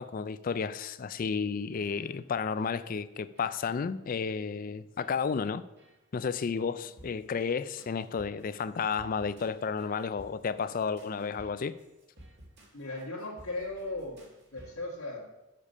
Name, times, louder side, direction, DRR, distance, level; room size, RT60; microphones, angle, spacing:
voice 1, 0.0-5.6 6.1-11.7, left 5 dB, 40° left, 0.3 m, -32 dB
sound 1, 1.1-1.4 1.7-2.3 2.6-3.0 3.4-3.9 4.2-4.4 5.0-5.5 5.8-6.0 6.6-14.7, right 1 dB, 50° right, 2.1 m, -56 dB
voice 2, 12.7-14.2 14.5-15.2, left 2 dB, 80° left, 1.7 m, -37 dB
7.4 x 6.6 x 5.4 m
head